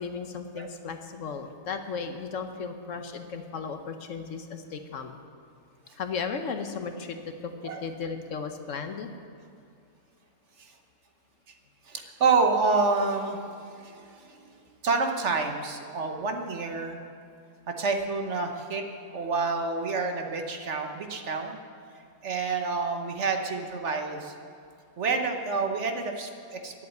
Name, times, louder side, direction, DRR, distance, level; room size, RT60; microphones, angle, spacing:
voice 1, 0.0-5.2 6.0-9.1, left 5 dB, 60° left, 7 dB, 1.1 m, -35 dB
voice 2, 11.9-13.4 13.7-14.4 14.8-17.0 17.7-18.8 19.1-21.6 22.2-24.3 25.0-26.9, right 4 dB, 55° right, 4 dB, 1.2 m, -28 dB
11.0 x 8.1 x 9.2 m, 2.5 s
omnidirectional pair, 1.5 m